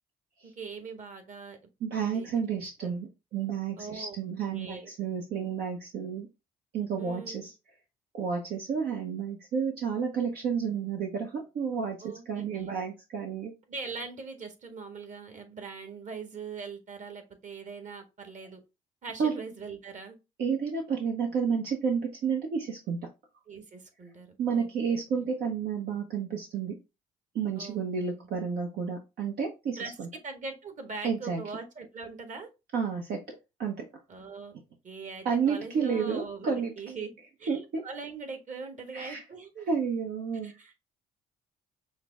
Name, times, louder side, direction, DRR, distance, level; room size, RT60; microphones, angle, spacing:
voice 1, 0.4-1.6 2.1-2.9 3.8-4.1 4.5-4.9 7.0-7.5 12.0-12.8 13.7-18.6 19.0-20.2 23.5-25.3 27.5-27.8 28.2-28.3 29.8-30.0 30.2-32.5 34.1-34.5 34.8-37.1 37.4-39.7 40.4-40.8, right 4 dB, 45° right, 6 dB, 1.5 m, -42 dB
voice 2, 1.8-6.3 6.7-7.5 8.1-13.5 19.2-19.3 20.4-23.0 24.4-26.7 27.3-30.1 31.0-31.4 32.7-33.2 33.6-33.8 35.2-36.7 37.5-37.8 38.9-39.2 39.7-40.5, right 6 dB, 65° right, 1 dB, 0.9 m, -31 dB
5.6 x 2.1 x 3.5 m, 0.26 s
supercardioid pair, 65°, 17 cm